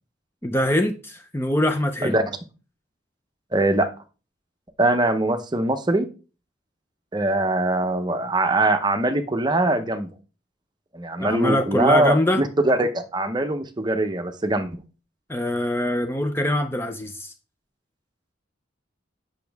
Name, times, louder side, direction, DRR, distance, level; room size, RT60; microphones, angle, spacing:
voice 1, 0.4-2.2 11.2-12.4 15.3-17.3, left 1 dB, 10° left, 0.6 m, -23 dB
voice 2, 3.5-3.9 4.8-6.1 7.1-10.1 10.9-14.8, right 2 dB, 20° right, 0.8 m, -22 dB
8.3 x 6.3 x 3.5 m
head